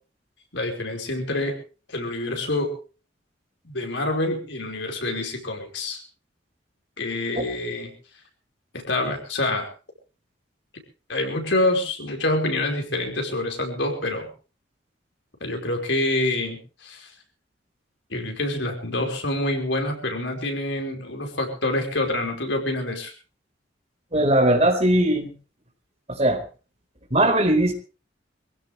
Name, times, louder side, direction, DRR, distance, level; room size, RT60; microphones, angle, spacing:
voice 1, 0.5-1.6 1.9-2.7 3.6-6.0 7.0-7.9 8.7-9.7 11.1-14.3 15.4-17.1 18.1-23.1, left 2 dB, 75° left, 3 dB, 5.1 m, -26 dB
voice 2, 24.1-25.3 26.1-26.4 27.1-27.7, right 1 dB, 35° right, 4 dB, 4.3 m, -19 dB
24.5 x 16.0 x 3.3 m, 0.35 s
head